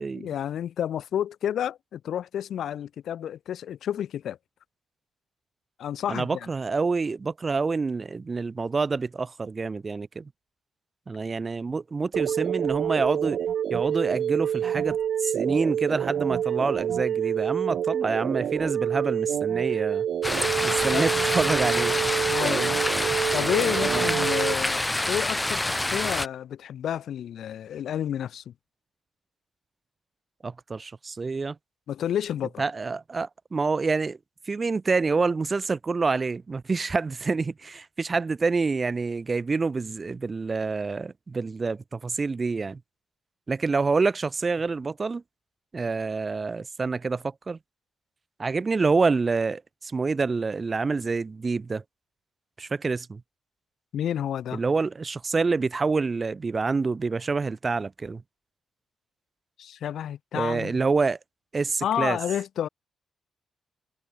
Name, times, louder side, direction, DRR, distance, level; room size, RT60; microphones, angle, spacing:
voice 1, 0.1-4.4 5.8-6.5 20.9-21.0 22.3-22.8 23.3-28.5 31.9-32.6 53.9-54.6 59.6-60.8 61.8-62.7, left 10 dB, 80° left, 3.4 m, -30 dB
voice 2, 6.1-10.3 11.1-13.4 13.7-20.1 20.6-22.0 23.8-24.1 30.4-31.6 32.6-34.2 34.5-42.8 43.5-45.2 45.7-47.6 48.4-51.8 52.6-53.2 54.5-58.2 60.3-61.2 61.5-62.2, right 4 dB, 35° right, 0.7 m, -27 dB
sound 1, 12.1-24.5, right 9 dB, 75° right, 1.0 m, -27 dB
sound 2, 20.2-26.3, left 1 dB, 15° left, 1.6 m, -26 dB
cardioid pair, 90°, 0 cm